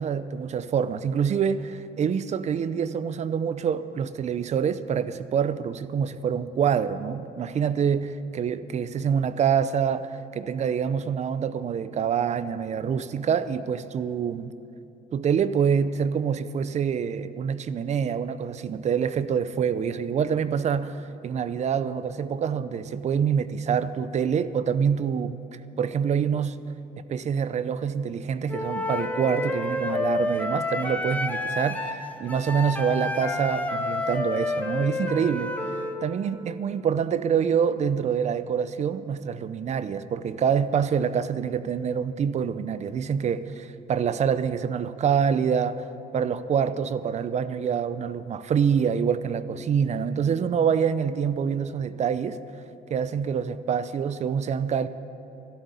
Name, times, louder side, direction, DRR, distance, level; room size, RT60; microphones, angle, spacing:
voice 1, 0.0-14.5 15.1-25.4 25.8-26.6 27.0-35.6 36.0-45.9 46.1-52.4 52.9-54.9, right 7 dB, 40° right, 0.6 m, -26 dB
Wind instrument woodwind instrument, 28.5-36.0, left 2 dB, 10° left, 1.2 m, -29 dB
13.0 x 12.0 x 8.3 m
cardioid pair, 110°, 17 cm